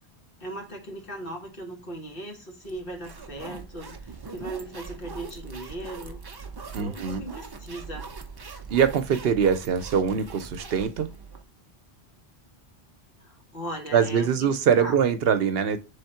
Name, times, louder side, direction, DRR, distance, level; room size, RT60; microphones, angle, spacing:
voice 1, 0.4-6.2 6.8-8.1 13.2-14.5 14.8-15.0, right 1 dB, 60° left, 1.6 m, -38 dB
sound 1, 2.6-11.4, right 4 dB, 35° right, 0.4 m, -41 dB
voice 2, 6.7-7.2 8.7-11.1 13.9-15.8, right 7 dB, 70° right, 0.8 m, -23 dB
3.6 x 3.5 x 4.3 m
omnidirectional pair, 1.1 m